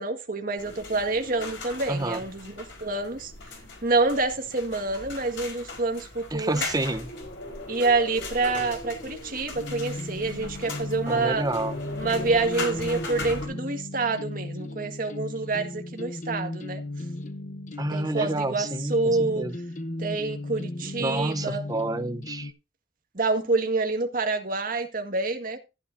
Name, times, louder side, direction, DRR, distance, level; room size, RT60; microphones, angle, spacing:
voice 1, 0.0-3.3 3.8-6.6 7.7-11.5 11.9-16.8 17.9-19.5 20.0-21.6 23.1-25.6, right 3 dB, 50° right, 1.7 m, -27 dB
sound 1, 0.6-13.5, left 2 dB, 85° left, 4.5 m, -38 dB
voice 2, 1.9-2.2 6.3-7.1 11.1-11.7 17.8-19.6 21.0-22.5, right 2 dB, 20° right, 0.8 m, -29 dB
sound 2, 9.5-22.5, left 2 dB, 45° left, 0.9 m, -36 dB
14.5 x 9.4 x 2.7 m
head